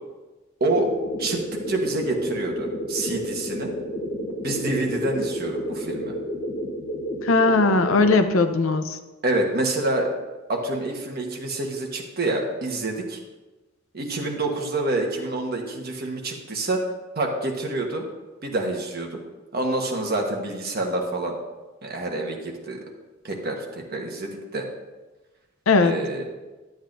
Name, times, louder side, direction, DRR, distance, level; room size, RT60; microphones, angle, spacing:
voice 1, 0.6-0.9 1.2-3.7 4.4-6.1 9.2-10.1 10.5-13.2 13.9-16.8 17.1-18.0 18.4-19.2 19.5-21.4 21.8-22.8 23.2-24.7 25.8-26.3, right 2 dB, 50° right, 1 dB, 1.3 m, -27 dB
sound 1, 0.7-8.2, equal, 30° left, 1.1 m, -31 dB
voice 2, 7.2-9.0 25.7-25.9, left 3 dB, 80° left, 9 dB, 0.7 m, -19 dB
12.0 x 8.0 x 2.6 m, 1.2 s
head